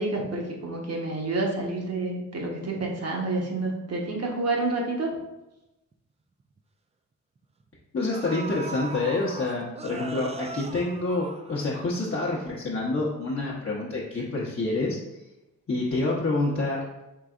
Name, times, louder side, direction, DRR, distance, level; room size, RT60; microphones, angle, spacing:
voice 1, 0.0-5.2, right 2 dB, 45° right, 0 dB, 1.1 m, -29 dB
sound 1, 5.9-6.0 6.4-6.6 7.6-7.7 8.1-12.0 12.4-12.5, right 3 dB, 20° right, 0.3 m, -39 dB
voice 2, 7.9-15.0 15.7-16.8, left 2 dB, 35° left, -6 dB, 0.9 m, -27 dB
4.8 x 3.2 x 2.4 m, 0.96 s
supercardioid pair, 55°, 36 cm